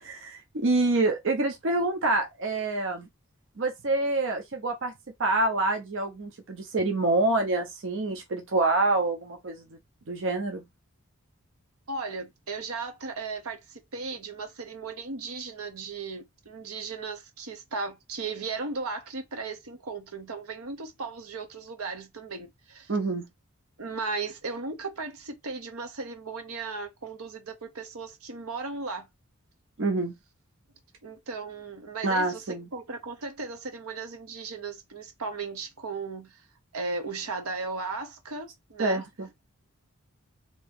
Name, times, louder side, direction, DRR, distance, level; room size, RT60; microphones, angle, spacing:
voice 1, 0.0-3.1 3.6-4.9 5.2-9.6 10.1-10.6 22.9-23.3 29.8-30.1 32.0-32.7 38.8-39.3, right 2 dB, 60° right, 0.6 m, -26 dB
voice 2, 11.9-22.9 23.8-29.1 31.0-36.4 36.7-39.0, right 4 dB, 85° right, 0.9 m, -36 dB
2.9 x 2.7 x 3.5 m
head